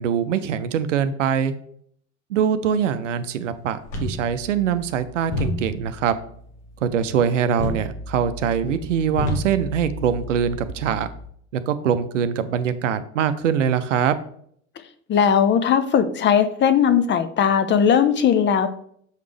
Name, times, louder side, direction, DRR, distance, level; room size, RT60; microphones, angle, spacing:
voice 1, 0.0-1.5 2.3-6.1 6.8-11.1 11.5-14.2, right 8 dB, 80° right, 11 dB, 0.6 m, -23 dB
body fall, 3.8-11.3, left 1 dB, 65° left, 1.6 m, -32 dB
voice 2, 15.1-18.7, left 8 dB, 30° left, 11 dB, 0.6 m, -18 dB
6.5 x 5.1 x 3.3 m, 0.65 s
figure-of-eight pair, 70°, 37 cm